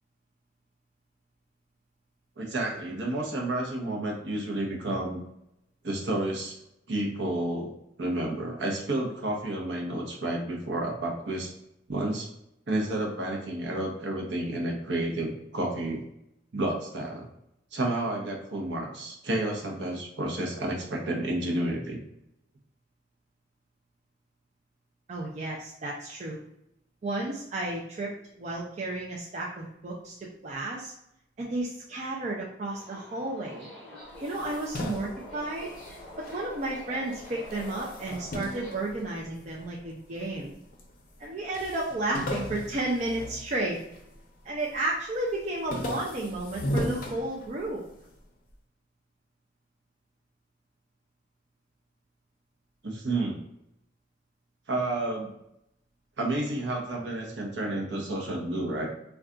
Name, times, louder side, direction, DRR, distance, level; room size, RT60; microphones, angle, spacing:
voice 1, 2.4-5.2 5.8-6.6 6.9-7.7 8.0-11.5 11.9-12.3 12.7-16.0 16.5-17.3 17.7-22.0 52.8-53.4 54.7-55.3 56.2-58.9, right 1 dB, 65° right, 0 dB, 0.7 m, -30 dB
voice 2, 25.1-26.4 27.0-28.1 28.4-30.1 30.4-30.9 31.4-33.7 34.2-35.7 36.3-40.5 41.2-43.8 44.5-47.8, right 2 dB, 35° right, -3 dB, 0.4 m, -32 dB
Subway metro underground, 32.7-38.7, left 1 dB, 5° left, 0.9 m, -46 dB
sound 1, 34.1-36.8 37.1-39.6 40.2-40.9 41.2-41.3 41.5-44.1 44.5-44.9 45.3-47.9, equal, 45° left, 0.5 m, -36 dB
2.3 x 2.3 x 3.7 m, 0.80 s
head